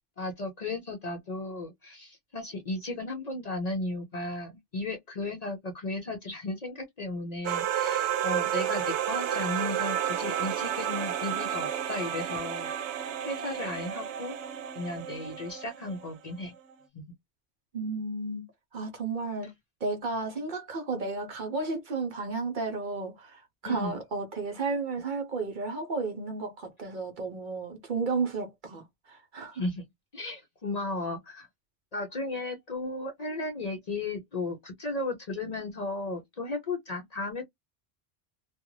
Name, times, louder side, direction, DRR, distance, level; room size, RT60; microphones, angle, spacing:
voice 1, 0.2-12.7 13.2-14.3 14.7-16.5 16.9-17.0 23.6-23.9 29.5-29.8 30.1-31.5 31.9-37.4, left 2 dB, 45° left, 0.6 m, -35 dB
sound 1, 7.4-16.0, right 10 dB, 90° right, 0.9 m, -31 dB
voice 2, 17.7-19.5 19.8-29.6, right 3 dB, 55° right, 0.8 m, -33 dB
2.4 x 2.2 x 3.0 m
omnidirectional pair, 1.1 m